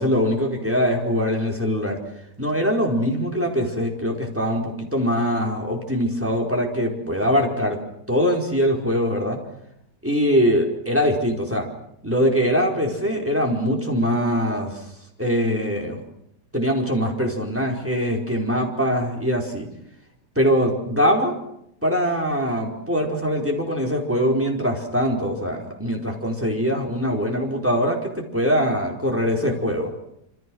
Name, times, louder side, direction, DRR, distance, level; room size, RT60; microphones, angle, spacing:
voice 1, 0.0-2.0 2.4-7.8 8.1-9.4 10.0-11.7 12.0-14.8 15.2-16.0 16.5-19.7 20.3-21.3 21.8-29.9, equal, 5° right, 1 dB, 4.7 m, -22 dB
27.5 x 27.0 x 6.4 m, 0.77 s
omnidirectional pair, 1.8 m